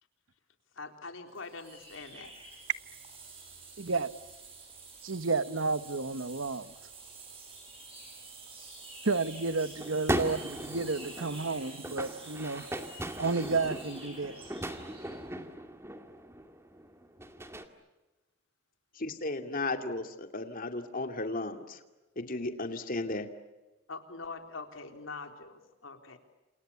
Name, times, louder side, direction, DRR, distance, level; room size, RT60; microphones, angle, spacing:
voice 1, 0.8-2.3 23.9-26.2, left 4 dB, 90° left, 3.9 m, -43 dB
sound 1, 1.3-15.2, right 3 dB, 30° right, 7.1 m, -49 dB
voice 2, 3.8-4.1 5.0-6.7 9.0-12.7 13.2-14.4, right 3 dB, 85° right, 1.3 m, -31 dB
sound 2, 9.8-17.7, right 1 dB, 15° right, 2.1 m, -38 dB
voice 3, 18.9-21.8 22.2-23.3, left 2 dB, 45° left, 2.5 m, -35 dB
29.5 x 28.0 x 7.1 m
head